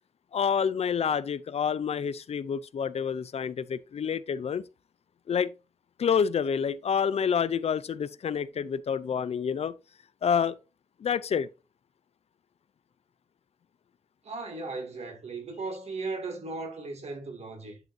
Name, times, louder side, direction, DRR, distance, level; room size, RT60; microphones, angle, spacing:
voice 1, 0.3-4.6 5.3-5.5 6.0-9.7 10.2-10.6 11.0-11.5, left 7 dB, 60° left, 0.5 m, -28 dB
voice 2, 14.2-17.8, right 3 dB, 65° right, 2.4 m, -37 dB
10.5 x 5.4 x 2.7 m
wide cardioid pair, 115°, 12 cm